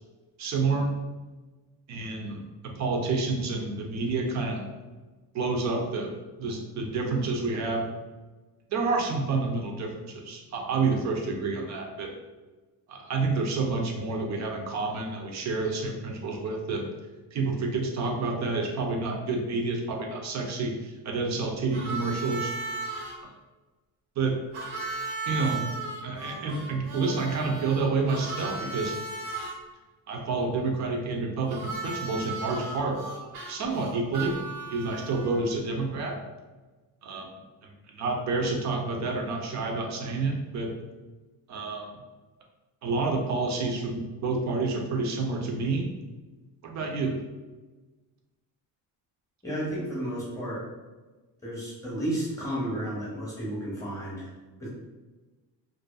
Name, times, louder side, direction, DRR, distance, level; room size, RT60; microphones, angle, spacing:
voice 1, 0.4-0.9 1.9-4.7 5.3-7.9 8.7-12.1 12.9-16.9 17.3-22.5 23.2-23.3 24.2-24.4 25.3-25.7 26.0-29.0 30.1-33.0 33.5-34.4 34.7-36.2 37.0-40.7 41.5-42.0 42.8-45.9 46.6-47.2, right 3 dB, 45° right, 2 dB, 0.4 m, -29 dB
Harmonica, 21.7-23.2 24.5-29.5 31.5-35.4, right 3 dB, 90° right, 0.8 m, -36 dB
voice 2, 49.4-50.6 51.4-54.3 54.6-54.7, right 1 dB, 10° left, -7 dB, 0.7 m, -32 dB
2.5 x 2.3 x 2.3 m, 1.2 s
cardioid pair, 175°, 40 cm